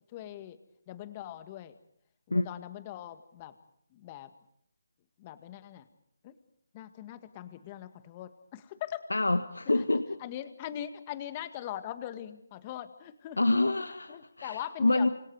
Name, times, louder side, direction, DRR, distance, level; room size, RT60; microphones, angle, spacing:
voice 1, 0.1-0.6 0.9-1.7 2.3-3.5 3.9-4.3 5.2-5.9 6.2-6.3 6.7-9.0 9.8-9.9 10.2-13.4 14.1-15.1, left 11 dB, 25° left, 10 dB, 1.8 m, -41 dB
voice 2, 9.1-10.2 13.4-15.1, left 2 dB, 85° left, 9 dB, 1.5 m, -27 dB
28.0 x 26.5 x 4.9 m, 0.71 s
figure-of-eight pair, 155°, 0 cm